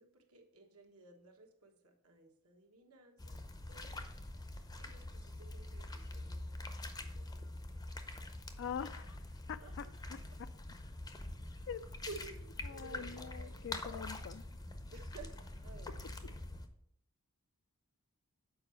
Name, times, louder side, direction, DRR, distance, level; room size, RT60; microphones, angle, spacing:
voice 1, 0.0-3.4 3.7-7.5 7.9-8.4 9.6-9.9 12.1-13.7 14.9-15.3 15.6-15.9 16.2-16.6, right 3 dB, 75° right, 3 dB, 1.3 m, -55 dB
sound 1, 3.2-16.7, left 2 dB, 20° left, 0.6 m, -45 dB
voice 2, 8.6-9.2 9.5-9.9 11.7-11.8 12.6-14.4, left 7 dB, 60° left, 14 dB, 0.4 m, -43 dB
7.0 x 4.7 x 5.6 m, 0.73 s
head